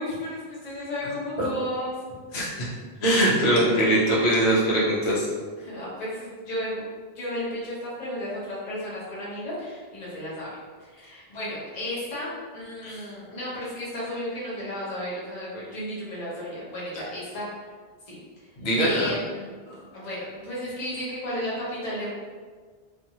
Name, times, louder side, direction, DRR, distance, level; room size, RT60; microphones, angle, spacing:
voice 1, 0.0-1.9 3.4-3.7 5.6-6.8 7.1-10.5 10.8-17.5 18.1-18.2 18.8-19.5 19.9-22.1, left 1 dB, 45° left, -8 dB, 0.9 m, -33 dB
voice 2, 2.3-2.7 3.0-5.3 12.8-13.0 18.6-19.1 19.7-19.8, right 1 dB, 75° left, -5 dB, 1.0 m, -22 dB
2.5 x 2.5 x 2.7 m, 1.5 s
omnidirectional pair, 1.1 m